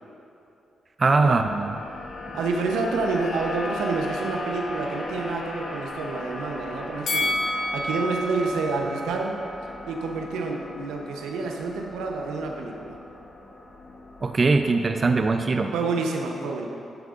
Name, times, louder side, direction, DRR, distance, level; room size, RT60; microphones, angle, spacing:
voice 1, 1.0-1.7 14.2-15.7, right 3 dB, 40° right, 6 dB, 0.5 m, -21 dB
sound 1, 1.2-15.3, left 2 dB, 50° left, 0.9 m, -38 dB
voice 2, 2.3-7.4 7.7-9.4 9.9-13.0 15.7-16.7, right 3 dB, 90° right, 1 dB, 0.8 m, -28 dB
Bell, 7.1-10.2 10.6-10.7, left 1 dB, 65° left, 1.3 m, -30 dB
12.0 x 9.0 x 2.6 m, 2.8 s
supercardioid pair, 55°, 0 cm